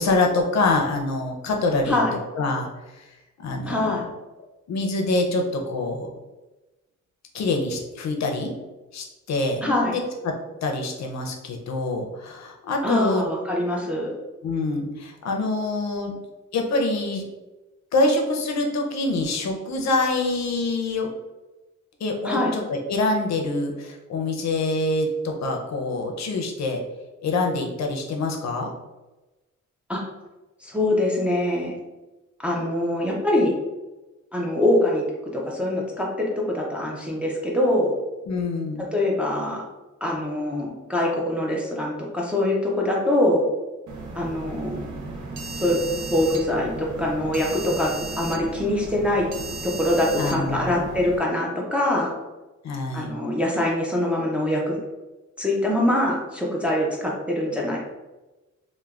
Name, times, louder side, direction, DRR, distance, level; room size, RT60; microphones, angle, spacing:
voice 1, 0.0-2.0 2.4-2.7 2.9-3.1 3.4-3.9 4.7-6.1 7.3-8.5 8.9-10.3 10.6-13.3 14.4-16.1 16.5-17.2 17.9-21.1 22.0-26.8 27.2-28.7 38.3-38.9 50.2-50.8 52.6-53.1, left 2 dB, 65° left, 2 dB, 0.5 m, -25 dB
voice 2, 3.7-4.1 9.6-9.9 12.8-14.1 22.2-22.5 29.9-30.0 30.6-31.7 32.4-33.5 34.3-35.0 35.3-37.9 38.9-39.6 40.0-43.4 44.1-44.9 45.6-49.3 49.6-52.1 52.9-54.8 55.4-57.8, left 1 dB, 5° right, -3 dB, 0.4 m, -24 dB
sound 1, 43.9-51.2, right 3 dB, 80° right, 0.6 m, -35 dB
3.2 x 2.1 x 2.3 m, 1.1 s
wide cardioid pair, 145°, 29 cm